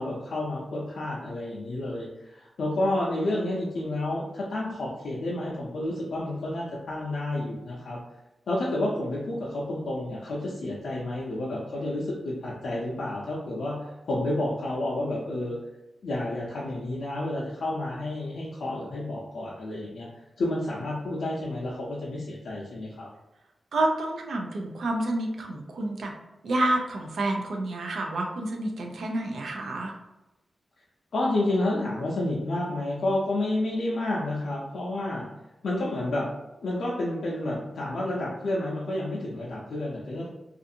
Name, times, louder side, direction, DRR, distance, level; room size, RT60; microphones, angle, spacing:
voice 1, 0.0-8.0 8.5-15.6 16.0-20.1 20.4-23.1 31.1-35.3 35.6-36.3 36.6-40.3, left 1 dB, 80° left, -6 dB, 0.5 m, -30 dB
voice 2, 23.7-26.1 26.4-29.9, right 1 dB, 80° right, 2 dB, 0.4 m, -29 dB
2.4 x 2.4 x 2.7 m, 0.98 s
wide cardioid pair, 140°, 0 cm